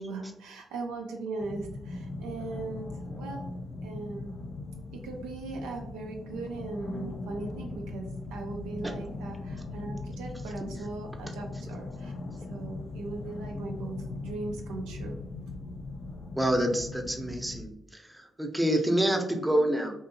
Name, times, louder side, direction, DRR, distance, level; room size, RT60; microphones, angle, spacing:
voice 1, 0.0-3.5 3.8-4.4 4.9-12.1 12.5-15.2, right 3 dB, 85° right, 2 dB, 0.4 m, -39 dB
sound 1, 1.4-17.6, left 2 dB, 55° left, 0.3 m, -39 dB
voice 2, 16.4-19.9, right 1 dB, 10° right, 3 dB, 0.7 m, -27 dB
2.7 x 2.4 x 2.6 m, 0.78 s
hypercardioid pair, 45°, 0 cm